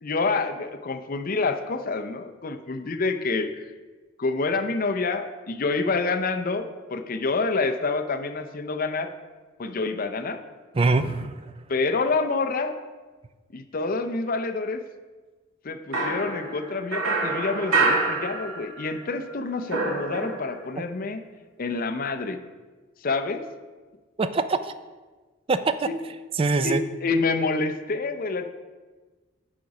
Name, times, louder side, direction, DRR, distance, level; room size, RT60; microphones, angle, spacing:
voice 1, 0.0-3.6 4.2-9.1 9.6-10.4 11.7-12.8 13.5-14.8 15.6-21.2 21.6-22.4 23.0-23.4 25.9-26.0 26.6-28.5, left 3 dB, 45° left, 8 dB, 0.6 m, -27 dB
voice 2, 10.7-11.5 24.2-24.7 25.5-25.9 26.3-26.8, right 3 dB, 25° right, 11 dB, 0.4 m, -23 dB
sound 1, 15.9-18.9 19.2-20.7, right 3 dB, 90° right, 2.0 m, -26 dB
8.8 x 5.2 x 4.8 m, 1.3 s
head